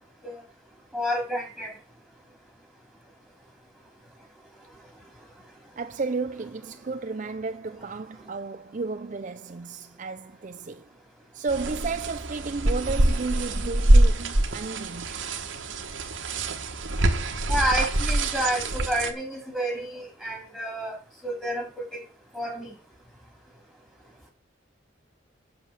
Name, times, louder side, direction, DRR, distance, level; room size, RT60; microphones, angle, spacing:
voice 1, 0.9-1.7 17.5-22.0 22.3-22.7, equal, ahead, 3.4 m, -29 dB
voice 2, 5.8-10.9 11.3-15.2, right 4 dB, 40° right, 0.5 m, -33 dB
sound 1, 11.5-19.1, right 1 dB, 75° right, 1.5 m, -24 dB
8.2 x 6.7 x 7.2 m
head